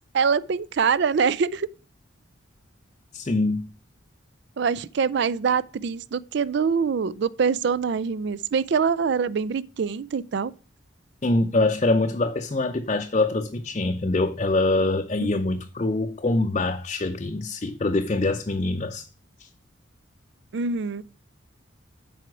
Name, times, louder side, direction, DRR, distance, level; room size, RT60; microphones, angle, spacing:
voice 1, 0.1-1.7 4.6-10.5 15.2-15.3 20.5-21.0, right 6 dB, 60° right, 0.4 m, -24 dB
voice 2, 3.1-3.7 11.2-19.0 19.4-19.5, left 2 dB, 35° left, 0.6 m, -24 dB
7.7 x 4.9 x 6.0 m
head